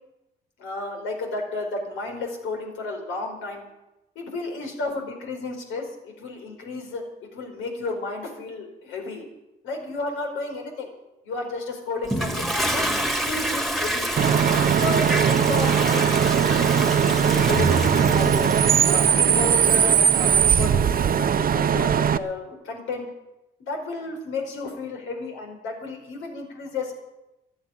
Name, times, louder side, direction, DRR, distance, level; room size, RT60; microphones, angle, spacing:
voice 1, 0.6-3.6 4.1-9.3 9.6-10.9 11.2-14.1 14.7-16.7 17.0-18.5 18.8-23.0 23.6-26.9, left 3 dB, 85° left, 2 dB, 4.9 m, -32 dB
Toilet flush, 12.0-18.9, right 1 dB, ahead, 1.7 m, -27 dB
Bus / Idling / Screech, 14.2-22.2, right 8 dB, 45° right, 0.8 m, -20 dB
12.5 x 11.5 x 9.9 m, 0.97 s
cardioid pair, 90°, 20 cm